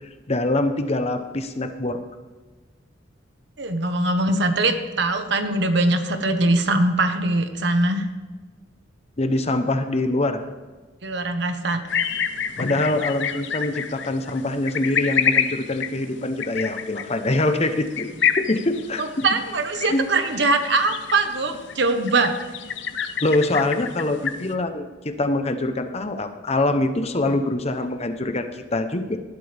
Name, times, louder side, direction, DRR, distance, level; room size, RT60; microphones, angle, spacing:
voice 1, 0.3-2.0 9.2-10.4 12.6-19.0 19.9-20.1 23.2-29.2, left 2 dB, 35° left, 8 dB, 0.9 m, -24 dB
voice 2, 3.6-8.1 11.0-11.8 19.0-22.3, right 2 dB, 65° right, 7 dB, 1.3 m, -22 dB
sound 1, 11.9-24.5, left 7 dB, 65° left, 0.8 m, -28 dB
18.5 x 12.0 x 3.5 m, 1.3 s
head